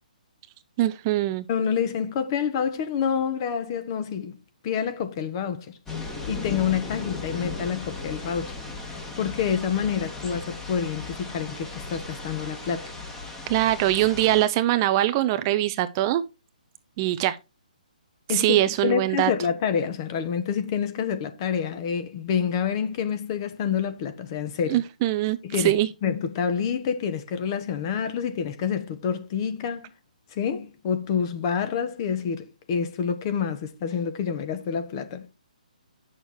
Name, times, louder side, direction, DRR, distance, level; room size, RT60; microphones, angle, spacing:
voice 1, 0.8-1.5 13.5-16.2 17.0-17.4 18.3-19.3 24.7-25.9, right 14 dB, 25° right, 0.4 m, -22 dB
voice 2, 1.5-4.4 4.6-5.7 6.0-8.5 8.9-12.9 18.3-24.8 25.4-29.9 30.3-35.2, left 7 dB, 30° left, 1.3 m, -28 dB
sound 1, 5.9-14.5, left 3 dB, 10° left, 1.7 m, -36 dB
8.7 x 6.3 x 4.6 m
hypercardioid pair, 155°, 5 cm